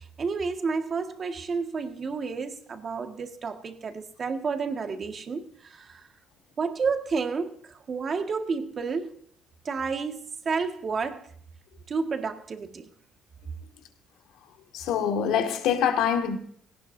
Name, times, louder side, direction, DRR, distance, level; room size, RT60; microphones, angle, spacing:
voice 1, 0.2-6.0 6.6-9.1 9.7-11.3 11.9-12.9, right 5 dB, 35° right, 1.8 m, -30 dB
voice 2, 14.7-16.4, left 8 dB, 80° left, 2.0 m, -25 dB
18.5 x 17.5 x 2.7 m
cardioid pair, 125°, 0 cm